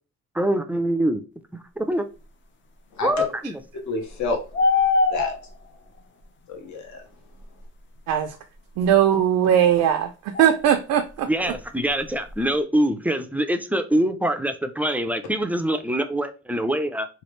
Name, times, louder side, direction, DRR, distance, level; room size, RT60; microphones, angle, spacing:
voice 1, 0.4-1.2 1.8-2.0 3.0-3.6 11.3-17.1, right 1 dB, 5° right, 0.4 m, -24 dB
voice 2, 3.9-5.3 6.5-7.0, left 3 dB, 65° left, 1.0 m, -30 dB
sound 1, 4.1-5.7 8.1-8.2 10.3-10.7 11.1-11.2 11.4-12.4, left 4 dB, 40° left, 0.6 m, -23 dB
voice 3, 8.8-11.3, right 10 dB, 85° right, 0.5 m, -19 dB
3.1 x 2.4 x 3.0 m
cardioid pair, 90°, 30 cm